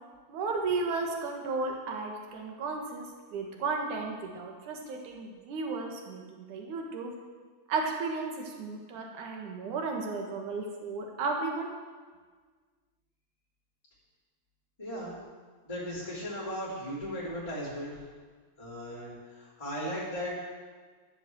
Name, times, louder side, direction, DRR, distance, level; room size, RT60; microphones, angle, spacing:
voice 1, 0.3-3.1 3.3-7.1 7.7-11.7, right 3 dB, 65° right, 1 dB, 2.1 m, -34 dB
voice 2, 14.8-15.1 15.6-18.0 18.6-20.4, equal, 10° left, -9 dB, 2.1 m, -37 dB
12.5 x 8.2 x 7.8 m, 1.5 s
omnidirectional pair, 5.9 m